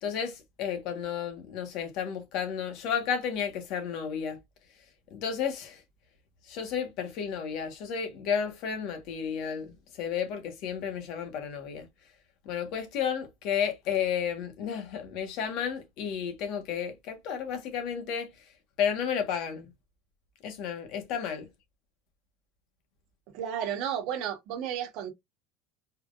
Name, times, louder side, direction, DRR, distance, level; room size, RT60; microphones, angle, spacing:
voice 1, 0.0-4.4 5.1-5.8 6.5-9.7 10.0-11.9 12.4-18.3 18.8-19.6 20.4-21.5, left 7 dB, 50° left, 1.4 m, -32 dB
voice 2, 23.3-25.1, right 9 dB, 55° right, 1.4 m, -32 dB
4.5 x 3.5 x 2.5 m
cardioid pair, 165°, 0 cm